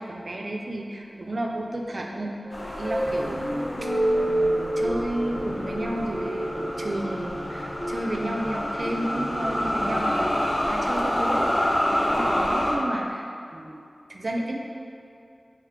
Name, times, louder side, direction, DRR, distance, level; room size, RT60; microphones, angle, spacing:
voice 1, 0.0-2.3 2.8-3.9 4.2-13.3 13.5-14.6, right 1 dB, 60° right, 1 dB, 0.3 m, -32 dB
sound 1, 2.1-10.0, right 1 dB, 75° left, 1.0 m, -29 dB
sound 2, 2.5-12.8, left 1 dB, 50° left, 0.4 m, -28 dB
sound 3, 3.1-10.4, equal, 10° right, 0.8 m, -43 dB
3.1 x 2.2 x 3.5 m, 2.5 s
cardioid pair, 40°, 0 cm